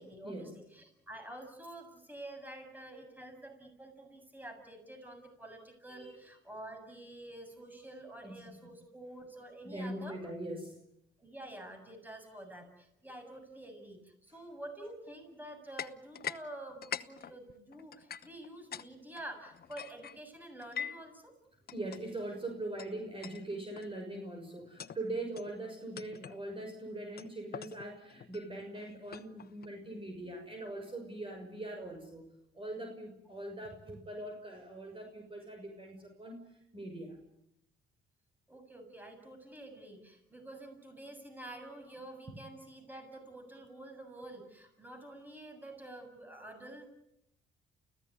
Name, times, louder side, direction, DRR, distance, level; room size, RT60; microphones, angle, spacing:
voice 1, 0.0-10.2 11.2-21.3 38.5-46.9, right 1 dB, 10° right, 5 dB, 7.5 m, -48 dB
voice 2, 5.9-6.2 8.2-8.4 9.6-10.8 21.7-32.3 32.5-37.2, right 1 dB, 25° right, 2 dB, 6.4 m, -42 dB
sound 1, 15.8-16.4 16.7-18.9 19.2-21.1 21.7-22.0 22.8-22.9 23.2-23.4 23.8-24.1 24.6-25.0 25.4-25.5 26.0-26.4 27.2-29.7, left 8 dB, 50° left, 1.0 m, -44 dB
29.5 x 16.0 x 9.8 m, 0.82 s
cardioid pair, 90°, 20 cm